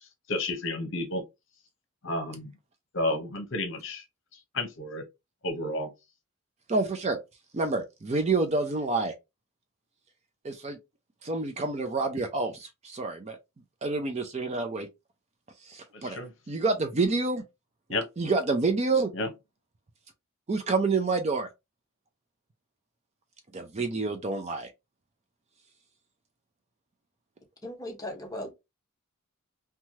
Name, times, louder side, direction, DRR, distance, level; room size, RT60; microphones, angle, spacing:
voice 1, 0.3-1.2 2.0-2.5 2.9-4.0 4.5-5.0 5.4-5.9 16.0-16.3 17.9-18.0 19.1-19.3, left 2 dB, 60° left, 0.8 m, -31 dB
voice 2, 6.7-7.2 7.5-9.1 10.4-10.8 11.2-13.4 13.8-14.9 15.7-16.2 16.5-17.4 18.2-19.1 20.5-21.5 23.5-24.7, right 3 dB, 30° right, 0.4 m, -28 dB
voice 3, 27.6-28.5, left 1 dB, 15° left, 0.8 m, -37 dB
3.1 x 2.3 x 2.7 m
head